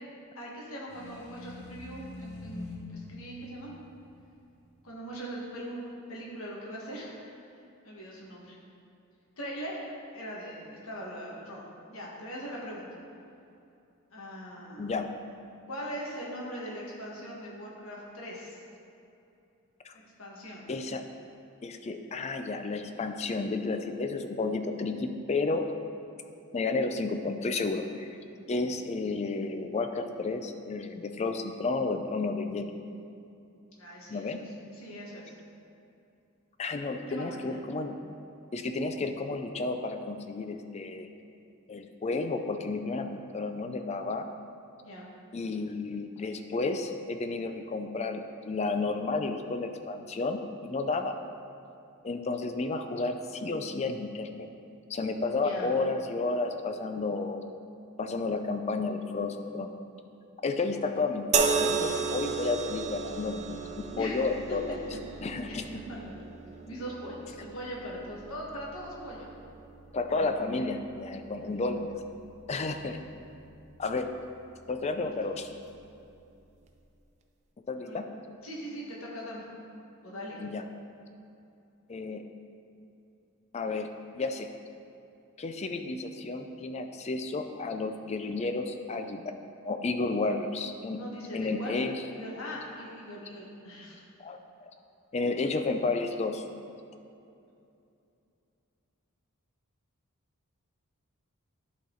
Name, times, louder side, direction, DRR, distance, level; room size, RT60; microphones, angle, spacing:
voice 1, 0.3-3.7 4.8-7.2 7.8-8.6 9.4-9.8 10.1-12.9 14.1-14.9 15.7-18.6 20.2-20.7 33.7-35.3 37.1-37.6 44.8-45.1 55.4-55.7 63.9-64.2 64.5-64.8 65.1-65.2 65.5-66.3 66.6-69.3 71.4-71.5 75.0-75.1 77.8-78.0 78.4-79.5 80.0-80.4 90.9-91.8 92.1-94.0, equal, 70° left, -3 dB, 1.6 m, -41 dB
sound 1, 0.9-4.8, left 2 dB, 55° left, 1.0 m, -45 dB
voice 2, 20.7-21.0 21.6-25.6 26.5-28.1 28.5-32.7 34.1-34.4 36.6-37.9 38.5-41.1 41.7-44.3 45.3-51.1 52.0-54.5 54.9-57.4 58.0-59.7 60.4-64.7 65.2-65.7 69.9-72.0 72.5-73.0 73.8-74.1 74.7-75.5 77.7-78.0 80.4-80.6 81.9-82.2 83.5-83.9 84.1-84.6 85.4-89.3 89.6-91.0 91.3-91.9 94.2-94.7 95.1-96.4, left 3 dB, 30° left, 7 dB, 0.4 m, -32 dB
sound 2, 61.3-74.7 75.6-75.8, right 5 dB, 30° right, 0.4 m, -35 dB
11.0 x 4.1 x 3.8 m, 2.6 s
head